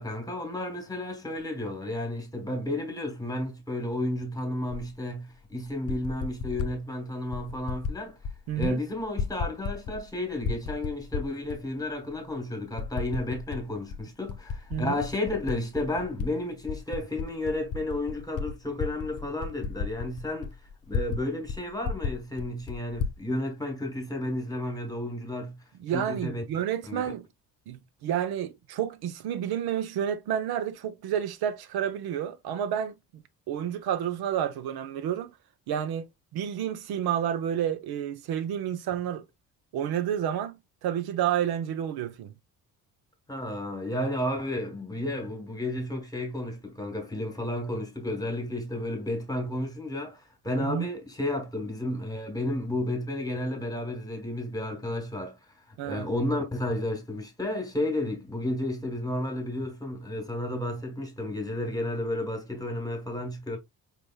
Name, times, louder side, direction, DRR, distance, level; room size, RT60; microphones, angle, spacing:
voice 1, 0.0-8.2 8.6-20.6 20.9-25.6 25.9-26.4 26.9-27.0 43.3-55.4 55.7-63.6, left 1 dB, 10° left, 1.3 m, -32 dB
Typing, 4.7-4.8 5.7-6.7 7.3-8.0 8.2-8.7 9.0-10.1 10.4-11.6 12.1-12.2 12.8-13.6 13.9-16.3 16.6-21.2 21.5-21.6 21.8-23.2, left 5 dB, 40° left, 0.7 m, -33 dB
voice 2, 8.5-8.8 14.7-15.0 25.8-27.3 27.7-35.3 35.7-39.2 39.7-42.3 50.6-50.9 55.8-56.1, right 9 dB, 80° right, 0.7 m, -30 dB
4.9 x 3.4 x 2.3 m
cardioid pair, 140°, 37 cm